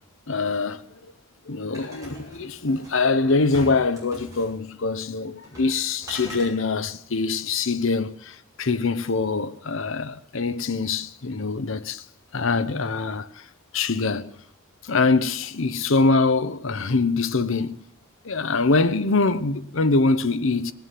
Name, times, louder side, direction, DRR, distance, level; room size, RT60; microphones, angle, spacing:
voice 1, 0.3-0.8 1.5-12.0 12.3-13.3 13.7-14.3 14.9-17.8 18.2-20.7, left 3 dB, 70° left, 0.8 m, -23 dB
sound 1, 1.7-3.0 3.5-4.5 5.4-5.8 6.0-6.5, equal, 15° right, 6.3 m, -40 dB
19.5 x 7.1 x 9.1 m
head